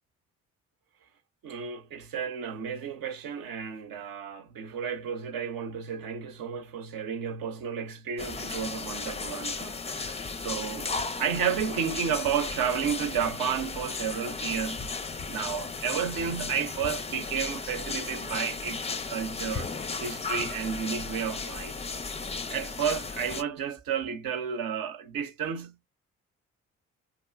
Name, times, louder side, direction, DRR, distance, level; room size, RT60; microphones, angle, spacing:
voice 1, 1.4-10.9 11.2-14.9 15.3-19.7 20.0-21.7 22.5-25.9, right 7 dB, 65° right, 0.8 m, -32 dB
sound 1, 8.2-23.4, left 4 dB, 15° left, 0.4 m, -35 dB
2.8 x 2.6 x 2.2 m
hypercardioid pair, 40°, 38 cm